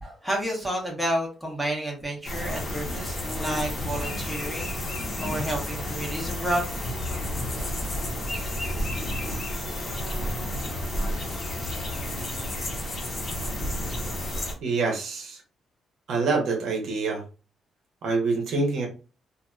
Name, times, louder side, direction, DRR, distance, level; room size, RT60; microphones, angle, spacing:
voice 1, 0.0-6.7, right 1 dB, ahead, -1 dB, 1.1 m, -30 dB
sound 1, 2.2-14.5, left 1 dB, 40° left, 1.0 m, -31 dB
voice 2, 14.6-15.4 16.1-17.2 18.0-18.9, right 3 dB, 75° right, 1 dB, 0.9 m, -26 dB
2.8 x 2.5 x 2.3 m, 0.34 s
cardioid pair, 105°, 0 cm